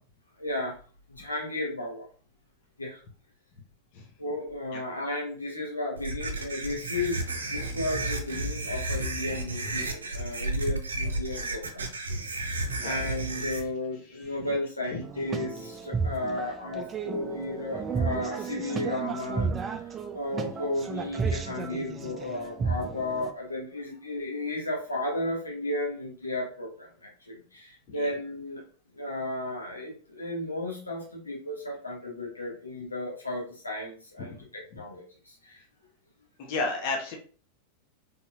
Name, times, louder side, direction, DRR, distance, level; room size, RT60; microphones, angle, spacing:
voice 1, 0.4-0.7 1.1-2.0 2.8-3.0 4.2-11.9 12.8-28.6 28.9-35.6, left 2 dB, 80° left, -2 dB, 1.2 m, -34 dB
sound 1, 6.0-13.6, right 2 dB, 70° right, 0.7 m, -32 dB
sound 2, 15.0-23.3, right 5 dB, 20° right, 0.4 m, -33 dB
voice 2, 36.4-37.2, left 3 dB, 45° left, 0 dB, 1.1 m, -31 dB
4.2 x 3.5 x 2.4 m, 0.39 s
figure-of-eight pair, 90°, 0 cm